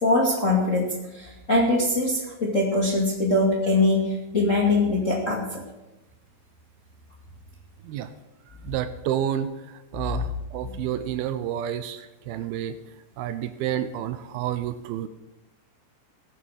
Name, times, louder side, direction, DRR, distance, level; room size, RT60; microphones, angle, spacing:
voice 1, 0.0-5.6 10.6-10.8, left 2 dB, 25° left, -3 dB, 1.8 m, -23 dB
voice 2, 8.6-12.8 13.2-15.1, right 10 dB, 80° right, 11 dB, 2.6 m, -30 dB
17.0 x 9.2 x 6.5 m, 1.0 s
omnidirectional pair, 4.5 m